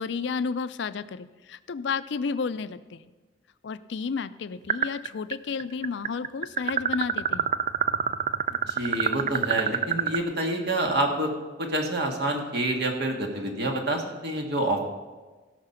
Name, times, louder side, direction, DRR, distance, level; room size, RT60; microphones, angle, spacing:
voice 1, 0.0-3.0 3.6-7.5, left 5 dB, 65° left, 14 dB, 0.4 m, -32 dB
sound 1, 4.7-5.3 5.6-10.2, right 8 dB, 40° right, 0.3 m, -26 dB
voice 2, 8.5-11.3 11.6-14.8, right 1 dB, 55° right, 2 dB, 1.8 m, -27 dB
16.5 x 5.8 x 5.6 m, 1.3 s
head